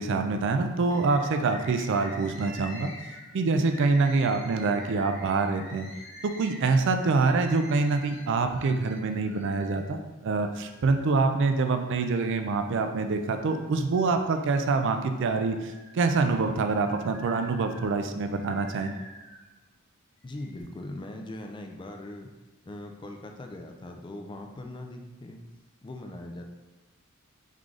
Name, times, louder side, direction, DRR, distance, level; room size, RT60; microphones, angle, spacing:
voice 1, 0.0-2.9 3.3-5.9 6.4-18.9, right 3 dB, 60° right, 6 dB, 0.4 m, -25 dB
Bird, 0.9-9.8 10.4-11.3 11.9-12.9 13.3-14.7 15.2-19.5 20.2-20.6, left 1 dB, 85° left, 1.0 m, -47 dB
voice 2, 20.2-22.3 22.6-25.4 25.8-26.4, left 1 dB, 20° left, 4 dB, 0.4 m, -40 dB
3.7 x 3.7 x 3.2 m, 1.1 s
head